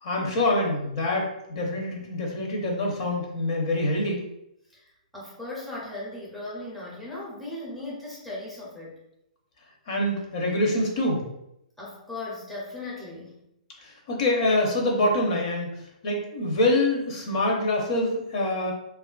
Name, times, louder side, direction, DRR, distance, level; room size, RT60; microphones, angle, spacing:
voice 1, 0.0-4.2 9.9-11.2 13.8-15.7 16.0-18.7, left 1 dB, 45° left, -1 dB, 0.7 m, -25 dB
voice 2, 4.7-8.9 11.8-13.4, left 2 dB, ahead, -7 dB, 0.5 m, -37 dB
3.0 x 2.4 x 2.3 m, 0.82 s
hypercardioid pair, 160°, 4 cm